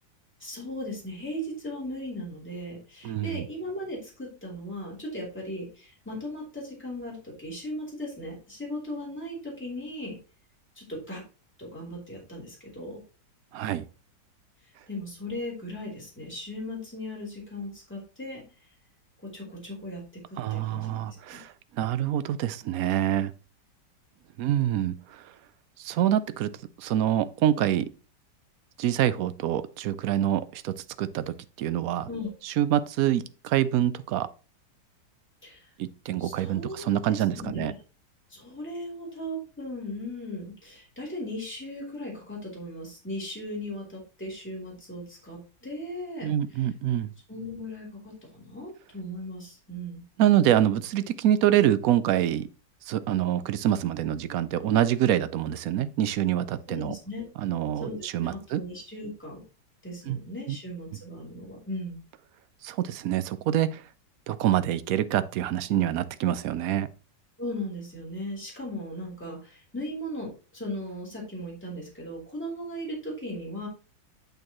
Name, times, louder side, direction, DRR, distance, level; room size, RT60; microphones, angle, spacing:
voice 1, 0.4-10.2 10.7-11.2 11.6-13.0 14.9-18.4 19.2-21.4 32.1-32.3 35.4-35.7 36.2-37.7 38.3-46.7 47.3-50.0 56.7-57.3 57.8-59.4 59.8-62.0 67.4-73.7, left 1 dB, 5° left, 3.3 m, -37 dB
voice 2, 3.0-3.5 13.5-13.8 20.4-23.3 24.4-25.2 25.8-26.5 26.8-27.9 28.8-32.1 32.4-34.3 35.8-37.7 46.2-47.1 50.2-52.5 52.9-56.9 57.4-58.6 60.1-60.2 60.5-60.6 62.6-63.8 64.3-66.9, right 11 dB, 65° right, 0.9 m, -26 dB
8.6 x 6.6 x 3.0 m
omnidirectional pair, 1.9 m